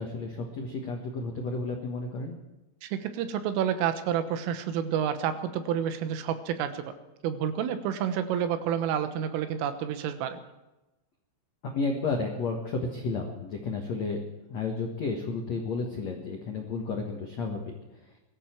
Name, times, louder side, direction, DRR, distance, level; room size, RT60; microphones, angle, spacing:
voice 1, 0.0-2.4 11.7-14.2 14.5-17.7, left 3 dB, 75° left, 2 dB, 1.5 m, -32 dB
voice 2, 2.8-6.9 7.2-10.4, right 9 dB, 85° right, 10 dB, 3.7 m, -29 dB
22.0 x 14.0 x 4.6 m, 1.0 s
omnidirectional pair, 5.8 m